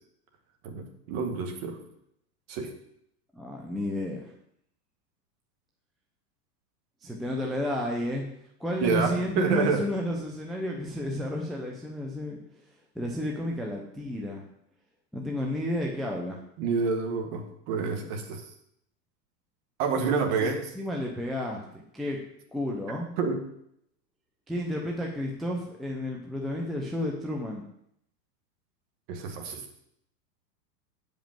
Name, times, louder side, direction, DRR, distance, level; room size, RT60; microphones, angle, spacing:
voice 1, 0.6-1.8 2.5-2.7 8.8-9.9 16.6-18.4 19.8-20.7 23.2-23.4 29.1-29.6, right 5 dB, 45° right, 4 dB, 1.9 m, -28 dB
voice 2, 3.3-4.3 7.0-8.2 8.6-12.4 13.0-14.4 15.1-16.4 20.4-22.2 22.5-23.1 24.5-27.7, left 1 dB, ahead, -1 dB, 0.5 m, -31 dB
8.2 x 5.3 x 7.6 m, 0.73 s
supercardioid pair, 145°, 50 cm